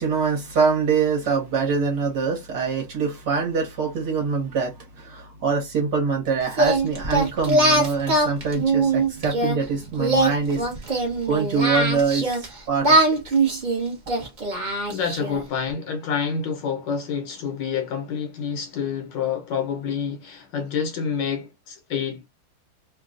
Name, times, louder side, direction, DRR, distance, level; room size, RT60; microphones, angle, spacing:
voice 1, 0.0-10.9 11.2-13.3, right 5 dB, 60° right, 1.6 m, -24 dB
Singing, 6.5-9.5 10.0-12.5 12.8-15.4, right 2 dB, 35° right, 0.8 m, -21 dB
voice 2, 14.9-22.3, left 6 dB, 70° left, 1.4 m, -28 dB
3.6 x 2.2 x 2.4 m
omnidirectional pair, 2.3 m